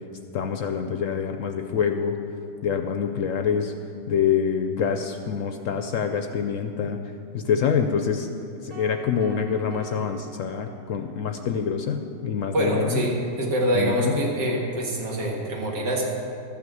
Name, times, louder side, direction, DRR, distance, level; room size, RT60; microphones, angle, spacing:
voice 1, 0.3-2.2 2.6-3.7 4.1-7.0 7.3-8.3 8.6-13.0 13.8-14.1, left 7 dB, 65° left, 6 dB, 0.8 m, -26 dB
sound 1, 8.7-11.2, equal, 25° right, 1.8 m, -44 dB
voice 2, 12.5-16.1, right 1 dB, 85° right, -2 dB, 2.5 m, -25 dB
13.0 x 6.0 x 7.7 m, 2.5 s
omnidirectional pair, 1.8 m